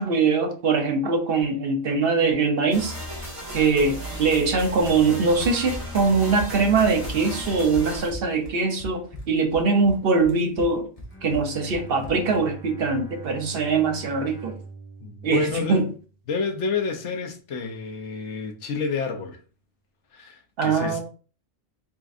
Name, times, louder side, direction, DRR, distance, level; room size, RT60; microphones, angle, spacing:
voice 1, 0.0-3.0 3.5-10.9 11.2-14.5 15.2-15.9 20.6-21.0, right 4 dB, 55° right, 0.9 m, -22 dB
sound 1, 2.7-8.1, right 1 dB, 25° right, 1.8 m, -35 dB
Run, 5.4-12.4, equal, 30° left, 1.0 m, -39 dB
Bowed string instrument, 11.1-16.4, right 4 dB, 10° left, 1.3 m, -43 dB
voice 2, 15.0-15.8 16.3-19.4 20.1-21.0, left 4 dB, 65° left, 1.0 m, -29 dB
4.0 x 3.7 x 2.5 m
omnidirectional pair, 1.3 m